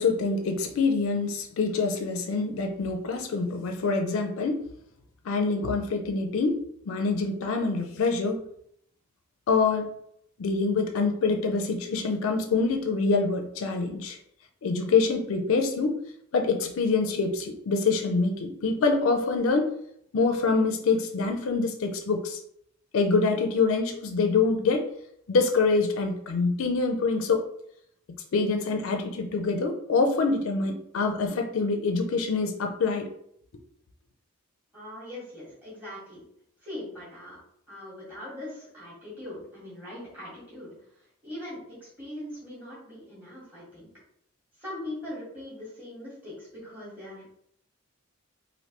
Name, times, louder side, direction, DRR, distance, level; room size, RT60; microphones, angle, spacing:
voice 1, 0.0-4.6 5.2-8.4 9.5-10.0 10.4-14.2 14.6-16.0 16.3-19.7 20.1-22.4 22.9-24.9 25.3-27.4 28.3-33.1, left 4 dB, 80° left, 4 dB, 0.4 m, -25 dB
voice 2, 34.7-36.3 36.6-37.4 37.7-43.9 44.6-47.4, left 1 dB, 10° right, -9 dB, 1.5 m, -41 dB
3.2 x 2.5 x 2.9 m, 0.71 s
head